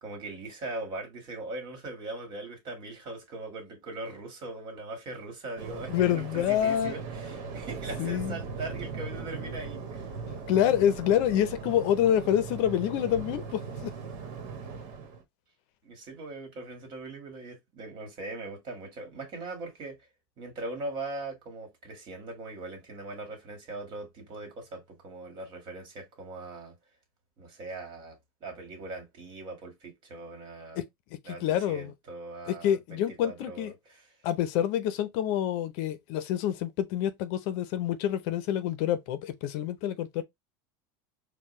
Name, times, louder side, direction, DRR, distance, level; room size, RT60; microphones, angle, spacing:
voice 1, 0.0-10.1 15.8-20.0 20.4-26.7 27.4-30.8 31.2-34.1, right 2 dB, 45° right, 1.8 m, -40 dB
Waves surf, 5.6-15.2, right 5 dB, 70° right, 1.2 m, -39 dB
voice 2, 5.9-6.9 8.0-8.4 10.5-13.9 30.8-30.9 31.1-31.9 32.5-33.7 34.2-40.2, left 10 dB, 60° left, 0.6 m, -27 dB
4.5 x 2.2 x 3.1 m
supercardioid pair, 130°, 11 cm